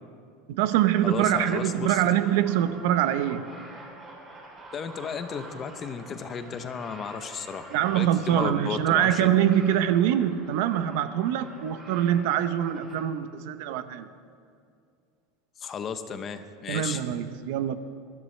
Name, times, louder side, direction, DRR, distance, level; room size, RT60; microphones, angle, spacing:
voice 1, 0.5-3.4 7.7-14.1 16.7-17.8, right 11 dB, 60° right, 12 dB, 0.6 m, -24 dB
voice 2, 1.0-2.0 4.7-9.3 15.6-17.0, left 6 dB, 20° left, 10 dB, 0.6 m, -34 dB
sound 1, 1.2-13.0, right 2 dB, 20° right, 3.4 m, -46 dB
21.0 x 13.0 x 3.2 m, 2.3 s
supercardioid pair, 170°, 0 cm